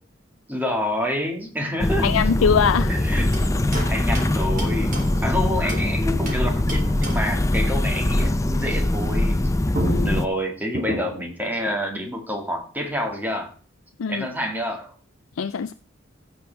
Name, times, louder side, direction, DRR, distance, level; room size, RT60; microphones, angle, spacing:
voice 1, 0.5-2.1 2.9-3.4 3.9-9.4 10.0-13.5 14.1-14.9, left 1 dB, 10° right, 1.9 m, -28 dB
sound 1, 1.8-10.3, left 1 dB, 15° left, 0.5 m, -22 dB
voice 2, 2.0-3.0 9.9-10.2 14.0-14.3 15.4-15.7, left 6 dB, 85° left, 0.4 m, -22 dB
sound 2, 3.3-5.9 6.3-7.4 9.4-9.5 9.7-11.4, right 1 dB, 40° right, 2.6 m, -33 dB
15.5 x 6.4 x 3.4 m
head